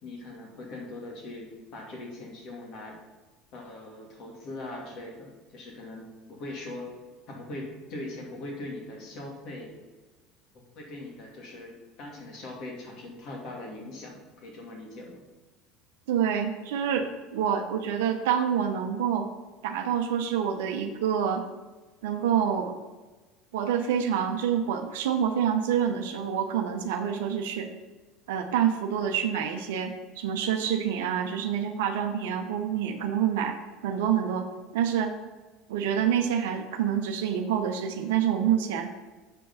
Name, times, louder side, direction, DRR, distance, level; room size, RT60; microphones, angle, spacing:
voice 1, 0.0-3.0 3.5-6.9 7.3-9.7 10.7-15.2, left 2 dB, 60° left, -1 dB, 2.5 m, -41 dB
voice 2, 16.1-19.3 19.6-21.4 22.0-22.8 23.5-27.7 28.3-33.6 33.8-35.2 35.7-38.9, right 8 dB, 80° right, 5 dB, 0.7 m, -27 dB
7.1 x 5.4 x 5.5 m, 1.2 s
hypercardioid pair, 80°, 0 cm